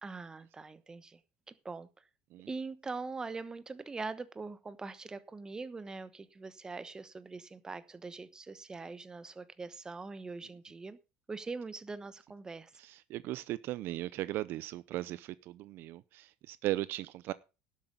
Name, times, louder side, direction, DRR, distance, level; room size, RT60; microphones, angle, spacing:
voice 1, 0.0-1.2 1.5-1.9 2.5-11.0 11.3-12.7, right 4 dB, 15° right, 14 dB, 1.1 m, -42 dB
voice 2, 12.8-17.3, right 16 dB, 55° right, 17 dB, 0.6 m, -37 dB
12.0 x 8.3 x 5.2 m, 0.30 s
cardioid pair, 130°, 4 cm